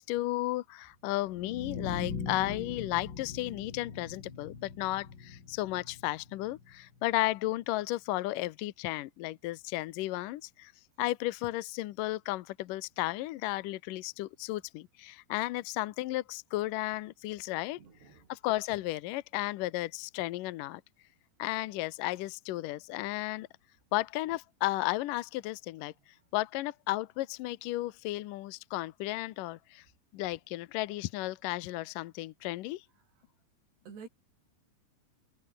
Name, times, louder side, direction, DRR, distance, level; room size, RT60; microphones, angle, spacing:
voice 1, 0.0-10.7 11.0-17.8 18.3-20.8 21.4-23.5 23.9-25.9 26.3-29.9 30.1-32.9, left 17 dB, 75° left, 2.0 m, -34 dB
sound 1, 1.2-7.2, left 5 dB, 30° left, 2.9 m, -41 dB
voice 2, 17.8-18.2 33.9-34.1, right 6 dB, 80° right, 7.5 m, -48 dB
omnidirectional pair, 4.7 m